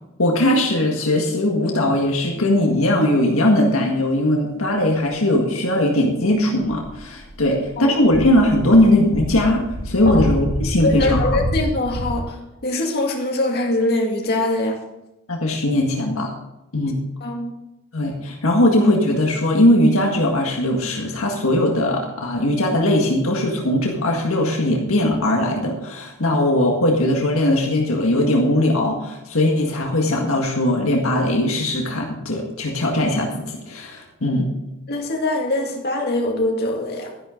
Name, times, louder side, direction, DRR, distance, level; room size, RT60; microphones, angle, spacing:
voice 1, 0.2-11.4 15.3-16.3 16.7-17.0 17.9-34.5, left 1 dB, 70° left, 0 dB, 1.8 m, -19 dB
sound 1, 6.6-7.7 8.0-12.2, equal, 90° right, 2.9 m, -27 dB
voice 2, 10.8-14.8 17.2-17.5 34.9-37.1, left 2 dB, 50° left, 0 dB, 2.2 m, -23 dB
12.0 x 11.0 x 3.9 m, 0.94 s
head